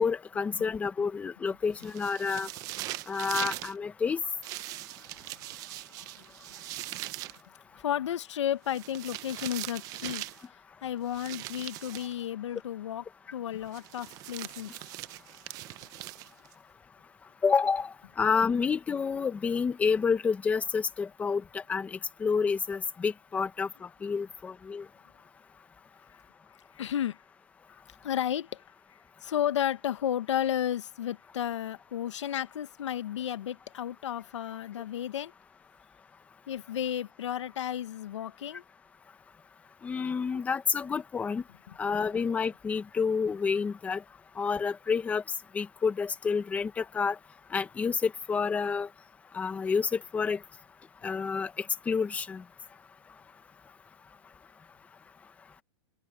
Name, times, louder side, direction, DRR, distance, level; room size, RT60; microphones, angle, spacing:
voice 1, 0.0-2.5 3.1-4.2 17.4-24.8 39.8-41.4 41.8-44.0 44.4-45.2 45.5-47.2 47.5-48.9 49.3-50.4 51.0-52.4, left 5 dB, 10° left, 1.3 m, -29 dB
sound 1, 1.8-3.7 4.4-7.4 8.7-10.5 11.1-12.2 13.7-16.5, right 17 dB, 20° right, 0.8 m, -40 dB
voice 2, 7.8-10.2 10.8-13.0 13.3-14.7 26.8-27.2 28.0-28.6 29.2-35.3 36.5-38.6, left 10 dB, 70° left, 1.5 m, -32 dB
open air
hypercardioid pair, 165°, 16 cm